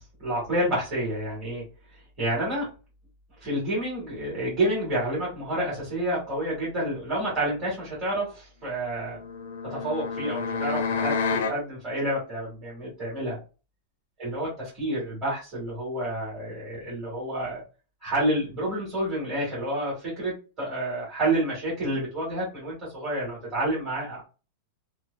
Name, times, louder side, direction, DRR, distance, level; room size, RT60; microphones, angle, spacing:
voice 1, 0.0-1.6 2.2-2.7 3.4-9.2 9.7-11.2 11.4-13.4 14.2-17.6 18.0-24.3, right 1 dB, 25° right, -7 dB, 1.6 m, -29 dB
sound 1, 9.0-11.6, left 5 dB, 70° left, 0.4 m, -29 dB
3.0 x 2.2 x 2.3 m, 0.32 s
supercardioid pair, 180°, 0 cm